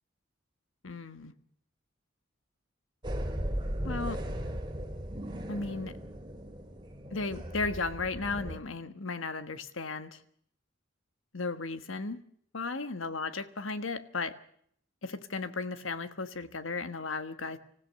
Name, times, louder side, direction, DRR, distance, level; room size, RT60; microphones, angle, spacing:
voice 1, 0.8-1.3 3.8-4.2 5.5-5.9 7.1-10.2 11.3-12.2 12.5-14.3 15.0-17.6, left 3 dB, 85° left, 10 dB, 1.4 m, -35 dB
sound 1, 3.0-8.6, equal, 25° right, 2.5 m, -37 dB
25.5 x 15.5 x 6.9 m, 0.66 s
head